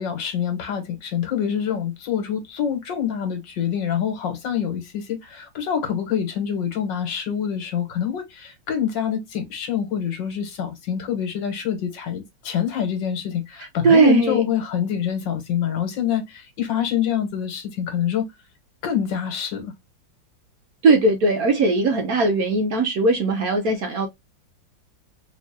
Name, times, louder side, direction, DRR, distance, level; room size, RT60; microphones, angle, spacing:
voice 1, 0.0-18.3 18.8-19.7, left 9 dB, 70° left, 1.7 m, -26 dB
voice 2, 13.8-14.4 20.8-24.1, right 3 dB, 60° right, 1.1 m, -19 dB
3.6 x 3.0 x 2.7 m
omnidirectional pair, 2.1 m